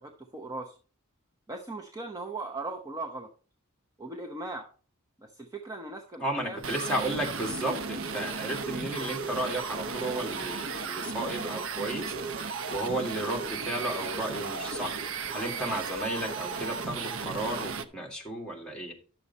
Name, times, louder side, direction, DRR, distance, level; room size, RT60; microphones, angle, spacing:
voice 1, 0.0-0.8 1.5-3.3 4.0-4.7 5.2-6.6, right 2 dB, 15° right, 2 dB, 0.8 m, -38 dB
voice 2, 6.2-12.2 12.7-15.0 15.3-18.9, right 1 dB, 5° left, -1 dB, 2.2 m, -33 dB
sound 1, 6.6-17.8, right 4 dB, 65° right, 0.8 m, -35 dB
10.5 x 6.8 x 4.1 m, 0.39 s
head